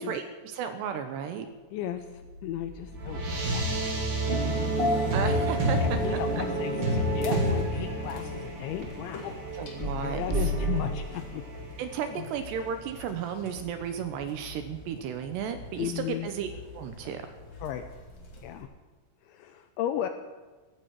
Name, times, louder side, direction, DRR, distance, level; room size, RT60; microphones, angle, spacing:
voice 1, 0.0-1.5 5.1-6.4 9.5-10.5 11.8-16.5 16.7-17.2, right 8 dB, 80° right, 8 dB, 2.5 m, -34 dB
voice 2, 1.7-3.2 3.5-4.1 4.8-5.2 5.8-9.5 9.8-11.4 12.1-12.3 15.8-16.3 17.6-17.8 18.4-18.7 19.2-20.1, left 11 dB, 85° left, 8 dB, 2.7 m, -35 dB
sound 1, 2.0-12.8, right 1 dB, 55° right, 4.9 m, -32 dB
sound 2, 4.3-9.4 9.8-10.8, right 1 dB, 20° right, 1.7 m, -30 dB
sound 3, 5.8-18.6, left 1 dB, 45° left, 1.6 m, -47 dB
17.0 x 15.5 x 4.7 m, 1.3 s
omnidirectional pair, 5.9 m